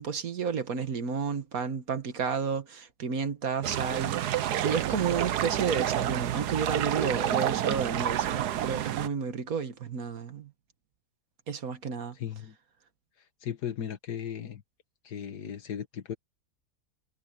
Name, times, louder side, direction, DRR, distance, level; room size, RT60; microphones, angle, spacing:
voice 1, 0.0-10.5 11.5-12.2, right 6 dB, 65° right, 1.8 m, -31 dB
sound 1, 3.6-9.1, right 11 dB, 80° right, 1.4 m, -29 dB
voice 2, 12.1-12.6 13.2-14.6 15.0-16.1, left 9 dB, 85° left, 1.9 m, -37 dB
omnidirectional pair, 1.7 m